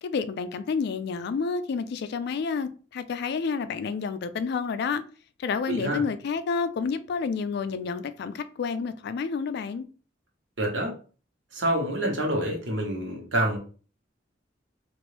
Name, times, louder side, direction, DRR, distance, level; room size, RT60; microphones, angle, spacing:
voice 1, 0.0-5.0 5.4-9.9, left 5 dB, 60° left, 0.3 m, -29 dB
voice 2, 5.7-6.0 10.6-10.9 11.5-13.6, right 1 dB, 85° right, 1.1 m, -27 dB
3.0 x 2.5 x 3.2 m
head